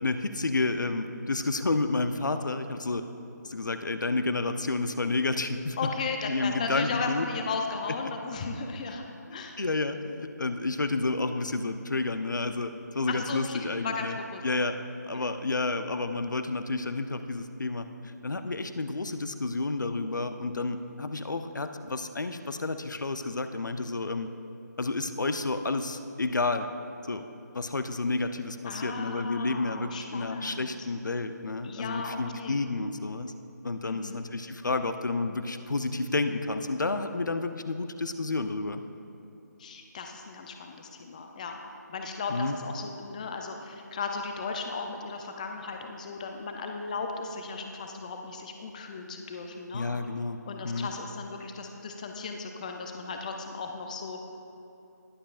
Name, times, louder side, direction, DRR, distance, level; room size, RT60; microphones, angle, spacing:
voice 1, 0.0-3.0 3.4-5.8 6.3-7.3 9.3-14.2 14.4-14.8 15.1-24.3 24.8-26.7 27.1-27.2 27.5-33.3 33.6-38.8 42.3-42.6 49.7-50.4 50.6-50.9, left 3 dB, 80° left, 9 dB, 0.7 m, -30 dB
voice 2, 5.8-9.0 9.3-9.6 13.1-14.4 15.1-15.3 28.7-30.8 31.6-32.6 33.8-34.2 39.6-41.6 41.9-49.9 50.5-54.2, left 4 dB, 25° left, 4 dB, 0.5 m, -36 dB
20.5 x 7.5 x 2.5 m, 2.8 s
figure-of-eight pair, 160°, 10 cm